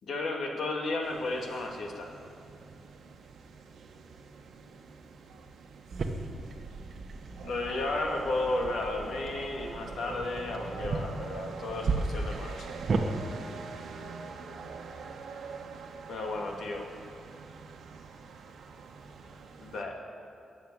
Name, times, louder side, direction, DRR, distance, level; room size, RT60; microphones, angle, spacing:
voice 1, 0.0-2.1 7.4-12.8 16.1-16.9 19.6-20.0, left 2 dB, 65° left, 1 dB, 2.4 m, -33 dB
sound 1, 1.0-19.8, right 5 dB, 75° right, 1.4 m, -45 dB
sound 2, 5.9-13.0, right 3 dB, 45° right, 1.3 m, -35 dB
21.5 x 7.6 x 8.7 m, 2.5 s
wide cardioid pair, 175°, 0 cm